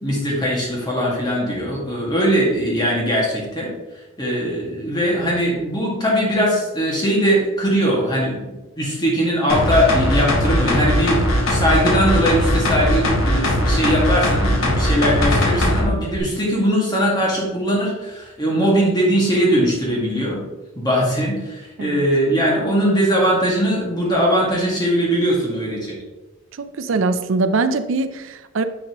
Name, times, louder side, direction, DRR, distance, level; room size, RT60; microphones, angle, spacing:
voice 1, 0.0-3.7 4.2-20.4 20.8-26.0, equal, 20° left, -4 dB, 1.8 m, -20 dB
sound 1, 9.5-15.8 16.2-16.3, left 1 dB, 70° left, 1.4 m, -19 dB
voice 2, 26.6-28.6, right 3 dB, 65° right, 10 dB, 0.5 m, -22 dB
9.4 x 4.0 x 3.0 m, 1.1 s
head